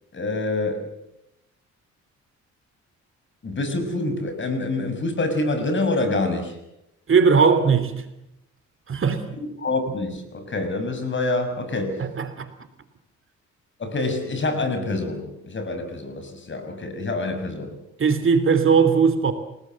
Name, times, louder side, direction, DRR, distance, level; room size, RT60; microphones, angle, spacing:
voice 1, 0.1-0.8 3.4-6.6 9.6-12.0 13.8-17.7, left 2 dB, 40° left, 8 dB, 6.4 m, -26 dB
voice 2, 7.1-7.9 8.9-9.2 12.0-12.5 18.0-19.3, right 5 dB, 45° right, 9 dB, 3.3 m, -18 dB
29.0 x 18.5 x 7.7 m, 0.86 s
cardioid pair, 90°, 30 cm